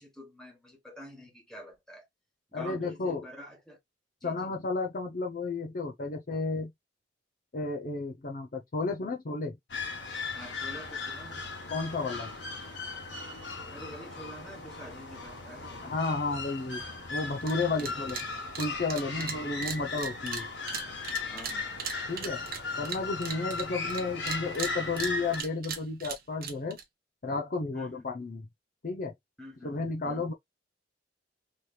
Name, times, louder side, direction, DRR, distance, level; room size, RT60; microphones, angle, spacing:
voice 1, 0.0-2.0 2.5-3.8 4.2-4.5 10.3-11.5 13.7-15.8 17.8-18.2 19.1-19.5 21.3-21.9 27.7-28.0 29.4-30.3, equal, 5° left, 1.4 m, -47 dB
voice 2, 2.5-3.2 4.2-6.7 7.5-9.6 11.7-12.3 15.8-16.8 17.1-18.2 18.6-20.5 22.1-22.4 22.8-26.8 27.2-28.5 28.8-29.1 29.6-30.3, left 3 dB, 50° left, 0.7 m, -32 dB
sound 1, 9.7-25.4, left 3 dB, 80° left, 1.4 m, -37 dB
sound 2, 17.4-17.5 17.8-18.3 18.5-24.0 24.3-26.8, right 7 dB, 55° right, 0.8 m, -38 dB
3.3 x 3.0 x 2.4 m
head